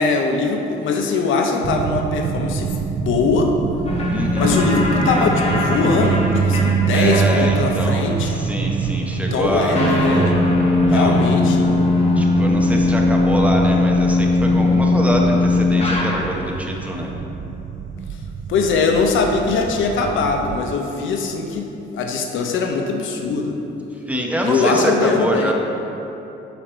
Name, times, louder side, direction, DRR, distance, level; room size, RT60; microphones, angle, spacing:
voice 1, 0.0-3.5 4.4-8.4 9.1-10.4 10.9-12.0 18.5-23.6 24.4-25.5, left 4 dB, 75° left, 3 dB, 0.7 m, -21 dB
sound 1, 1.6-20.7, right 6 dB, 45° right, 0.4 m, -25 dB
sound 2, 3.8-16.6, left 3 dB, 30° left, 1.3 m, -20 dB
voice 2, 4.1-4.7 6.9-9.8 10.9-11.1 12.2-17.1 24.1-25.5, equal, 5° right, -1 dB, 0.9 m, -24 dB
7.0 x 4.9 x 4.4 m, 2.9 s
cardioid pair, 90°, 20 cm